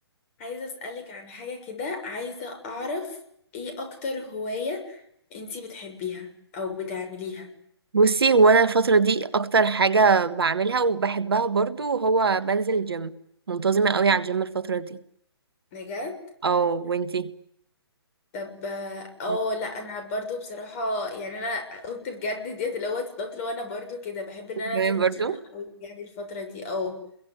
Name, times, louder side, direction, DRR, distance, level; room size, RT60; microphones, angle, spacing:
voice 1, 0.4-3.2 3.5-5.0 5.3-7.5 15.7-16.2 18.3-27.0, left 3 dB, 35° left, 6.8 m, -33 dB
voice 2, 7.9-13.1 13.5-15.0 16.4-17.3 24.7-25.4, right 4 dB, 65° right, 1.6 m, -22 dB
30.0 x 22.5 x 8.3 m
figure-of-eight pair, 130°, 13 cm